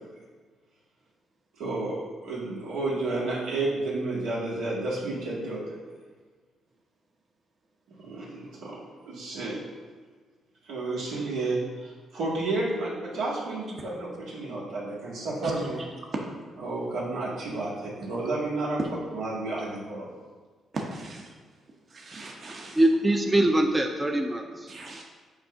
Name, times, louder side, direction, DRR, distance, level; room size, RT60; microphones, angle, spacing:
voice 1, 1.6-5.8 8.0-9.6 10.6-15.8 16.6-18.8 19.1-20.1, right 2 dB, 90° right, -6 dB, 1.7 m, -31 dB
voice 2, 20.7-21.3 21.9-22.8 24.7-25.0, right 3 dB, 45° right, 0 dB, 0.9 m, -36 dB
voice 3, 22.8-25.0, right 1 dB, 15° right, 4 dB, 0.4 m, -23 dB
7.3 x 2.7 x 5.5 m, 1.5 s
cardioid pair, 90°, 0 cm